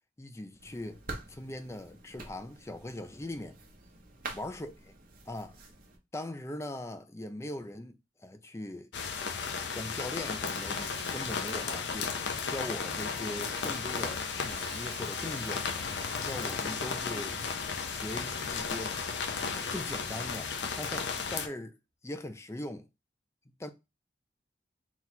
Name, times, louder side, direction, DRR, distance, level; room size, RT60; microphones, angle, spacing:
voice 1, 0.2-1.0 1.3-3.6 4.3-5.0 5.3-5.6 6.1-8.9 9.7-12.1 12.5-15.6 16.2-17.4 17.8-19.0 19.5-21.7 22.0-22.9 23.6-23.7, left 1 dB, 15° left, 0.4 m, -40 dB
sound 1, 0.6-6.0, right 3 dB, 45° right, 1.0 m, -46 dB
sound 2, 8.9-21.5, left 5 dB, 70° left, 0.6 m, -34 dB
Sawing, 10.5-12.6 13.4-18.0 19.4-21.2, right 4 dB, 70° right, 1.0 m, -51 dB
4.0 x 2.4 x 4.2 m
head